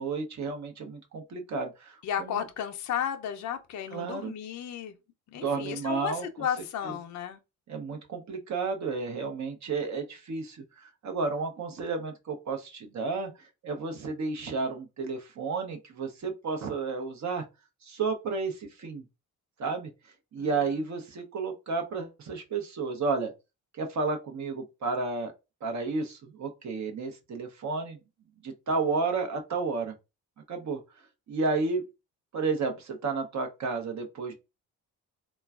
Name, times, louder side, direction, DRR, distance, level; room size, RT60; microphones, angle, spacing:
voice 1, 0.0-2.4 3.9-4.3 5.4-6.3 6.8-6.9 7.7-17.4 17.8-19.0 19.6-19.9 20.3-23.3 23.7-25.3 25.6-28.0 28.4-29.9 30.5-30.8 31.3-31.8 32.3-34.3, right 4 dB, 45° right, 0.7 m, -32 dB
voice 2, 2.0-4.9 5.3-7.4 20.4-20.6, left 9 dB, 50° left, 0.5 m, -33 dB
3.1 x 2.2 x 2.3 m
supercardioid pair, 65°, 38 cm